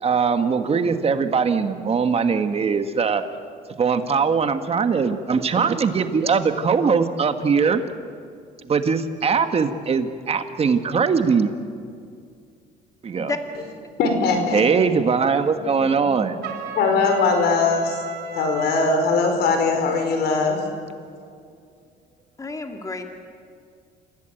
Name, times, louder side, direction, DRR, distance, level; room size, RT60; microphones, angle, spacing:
voice 1, 0.0-3.2 3.8-7.8 8.7-11.5 13.0-13.3 14.5-16.4, right 5 dB, 35° right, 9 dB, 1.5 m, -21 dB
voice 2, 14.0-14.6 15.5-18.0 18.3-20.7, left 4 dB, 75° left, 5 dB, 4.9 m, -21 dB
Trumpet, 16.4-19.0, right 4 dB, 80° right, 3.8 m, -35 dB
voice 3, 22.4-23.0, left 3 dB, 20° left, 4 dB, 2.4 m, -30 dB
29.0 x 16.0 x 9.1 m, 2.3 s
cardioid pair, 110°, 17 cm